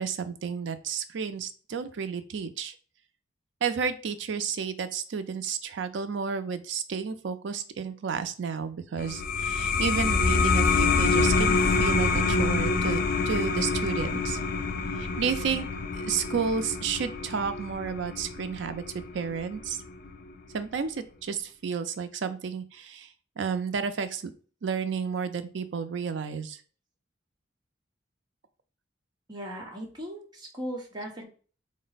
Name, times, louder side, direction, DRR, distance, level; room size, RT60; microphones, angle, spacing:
voice 1, 0.0-2.7 3.6-14.4 15.0-15.6 15.9-19.8 20.5-23.1 23.4-24.3 24.6-26.6, right 6 dB, 75° right, 10 dB, 0.4 m, -31 dB
sound 1, 9.0-20.2, left 4 dB, 45° left, 0.4 m, -26 dB
voice 2, 29.3-31.2, equal, 20° right, -1 dB, 1.0 m, -38 dB
3.8 x 2.1 x 4.0 m, 0.40 s
head